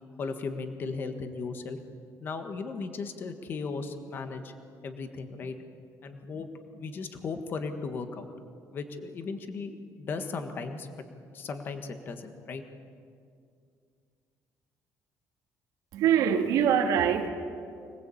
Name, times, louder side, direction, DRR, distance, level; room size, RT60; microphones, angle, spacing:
voice 1, 0.2-1.8 2.2-4.5 4.8-5.6 6.0-8.3 8.7-10.9 11.3-12.6, left 4 dB, 35° left, 7 dB, 1.6 m, -36 dB
voice 2, 15.9-17.3, right 8 dB, 90° right, 4 dB, 2.2 m, -23 dB
25.5 x 19.5 x 8.6 m, 2.3 s
cardioid pair, 180°, 6 cm